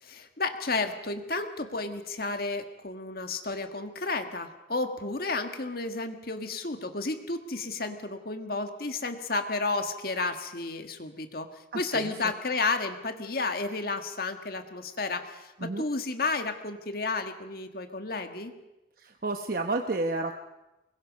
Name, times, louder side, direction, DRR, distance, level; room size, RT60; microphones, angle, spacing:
voice 1, 0.0-11.5 11.7-18.5, left 3 dB, 55° left, 6 dB, 1.7 m, -32 dB
voice 2, 11.7-12.1 15.6-15.8 19.0-20.4, right 2 dB, 50° right, 5 dB, 1.0 m, -31 dB
24.5 x 21.5 x 5.3 m, 0.98 s
head